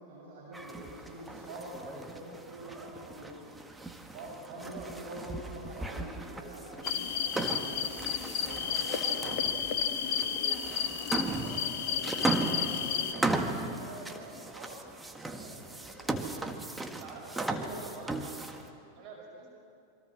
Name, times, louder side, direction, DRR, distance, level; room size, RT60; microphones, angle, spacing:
voice 1, 0.0-3.4 4.1-7.9 8.4-9.5 9.9-13.3 13.6-14.8 15.2-16.4 17.3-17.8, right 1 dB, 55° right, -4 dB, 7.0 m, -46 dB
sound 1, 0.5-18.7, right 2 dB, 10° right, 1.7 m, -37 dB
sound 2, 6.8-13.1, left 8 dB, 50° left, 1.6 m, -32 dB
voice 2, 16.8-18.5 18.9-19.6, right 4 dB, 35° right, 0 dB, 5.2 m, -47 dB
27.5 x 24.0 x 6.4 m, 2.4 s
figure-of-eight pair, 90°, 0 cm